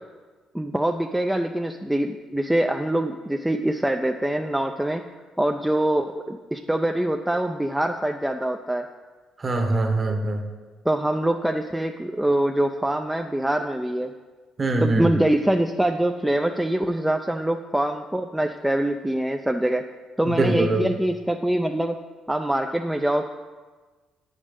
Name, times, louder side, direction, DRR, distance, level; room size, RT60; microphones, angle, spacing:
voice 1, 0.5-5.0 5.4-8.9 10.9-14.1 14.8-19.9 20.2-22.0 22.3-23.3, right 1 dB, 5° right, 4 dB, 0.4 m, -24 dB
voice 2, 9.4-10.4 14.6-15.1 20.3-20.8, right 2 dB, 35° right, 5 dB, 1.1 m, -23 dB
8.4 x 5.4 x 5.2 m, 1.3 s
cardioid pair, 90°, 0 cm